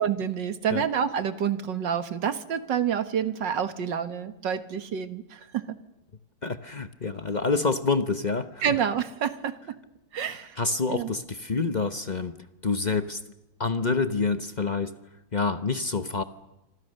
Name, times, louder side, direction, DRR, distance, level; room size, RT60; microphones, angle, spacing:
voice 1, 0.0-5.7 8.6-9.5 10.1-10.6 10.9-11.1, right 8 dB, 65° right, 10 dB, 2.1 m, -28 dB
voice 2, 6.4-8.8 10.6-12.4 12.6-13.2 13.6-14.9 15.3-16.2, left 4 dB, 35° left, 10 dB, 0.7 m, -27 dB
26.5 x 26.0 x 6.6 m, 0.92 s
omnidirectional pair, 2.1 m